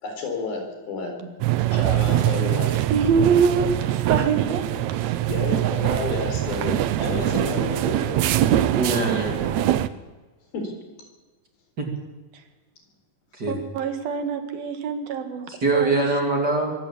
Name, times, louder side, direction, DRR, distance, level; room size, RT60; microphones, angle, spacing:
voice 1, 0.0-1.1 1.7-2.7 5.3-8.2 10.5-10.7, left 3 dB, 75° left, 3 dB, 6.0 m, -30 dB
sound 1, 1.4-9.9, right 12 dB, 90° right, 1.6 m, -23 dB
voice 2, 2.9-3.7 4.1-4.6 12.3-12.4 13.5-16.0, right 6 dB, 75° right, 7 dB, 3.5 m, -24 dB
voice 3, 8.8-9.5 11.8-11.9 13.3-13.5 15.5-16.7, right 3 dB, 30° right, 2 dB, 2.9 m, -23 dB
23.5 x 13.5 x 8.5 m, 1.3 s
omnidirectional pair, 4.3 m